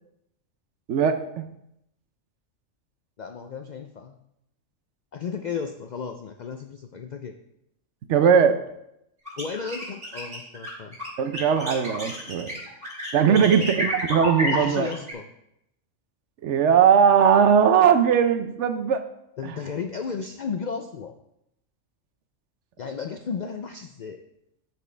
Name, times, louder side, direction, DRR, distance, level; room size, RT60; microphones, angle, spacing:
voice 1, 0.9-1.4 8.1-8.6 11.2-12.5 13.1-14.9 16.4-19.0 19.4-19.5, right 7 dB, 70° right, 9 dB, 0.9 m, -19 dB
voice 2, 3.2-4.2 5.1-7.3 9.4-11.0 13.3-13.7 14.4-15.3 19.4-21.1 22.8-24.2, left 6 dB, 65° left, 5 dB, 0.4 m, -34 dB
sound 1, 9.2-15.1, left 1 dB, 25° right, 3.1 m, -31 dB
13.0 x 4.5 x 3.3 m, 0.81 s
omnidirectional pair, 1.3 m